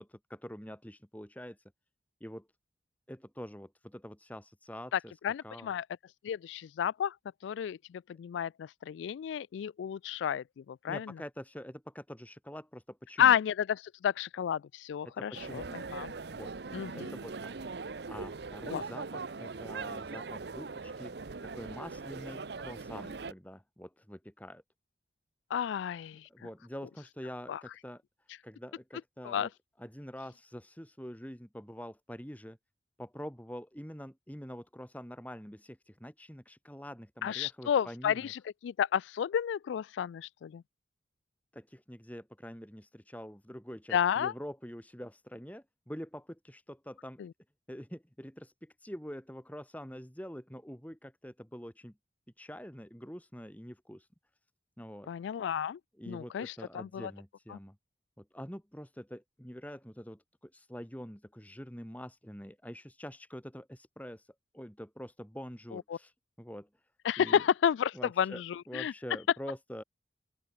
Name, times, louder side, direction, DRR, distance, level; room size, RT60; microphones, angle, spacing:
voice 1, 0.0-1.6 2.2-2.5 3.1-5.7 10.9-13.3 15.0-16.5 16.9-17.5 17.8-24.6 26.3-28.0 28.4-29.5 29.8-32.6 33.0-38.3 41.5-47.2 47.7-51.9 52.4-54.1 54.8-55.1 56.0-57.8 58.2-66.7 67.2-67.4 67.9-68.4 68.7-69.8, equal, 10° left, 4.6 m, -45 dB
voice 2, 4.9-5.8 6.2-7.1 7.4-11.1 13.2-16.1 16.7-17.1 18.7-18.8 25.5-26.2 27.5-27.6 29.2-29.5 37.2-40.6 43.9-44.3 47.2-47.3 55.1-55.8 56.1-57.1 57.5-57.6 65.7-66.0 67.0-68.9, left 9 dB, 85° left, 0.3 m, -31 dB
sound 1, 15.3-23.3, right 4 dB, 65° right, 0.7 m, -41 dB
open air
head